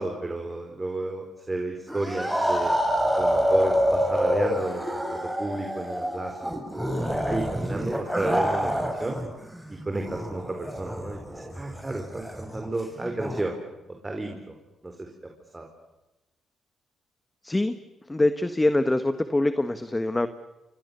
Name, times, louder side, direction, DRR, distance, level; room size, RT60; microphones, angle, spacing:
voice 1, 0.0-2.7 3.2-6.6 6.9-9.2 9.7-13.6 13.9-14.6 14.8-15.1 15.5-15.7, right 2 dB, 20° right, 3 dB, 4.4 m, -32 dB
sound 1, 1.9-9.3 9.5-13.4, equal, 5° right, 7.4 m, -27 dB
voice 2, 18.1-20.3, left 2 dB, 15° left, 10 dB, 1.5 m, -24 dB
29.5 x 24.0 x 7.0 m, 1.0 s
cardioid pair, 75°, 0 cm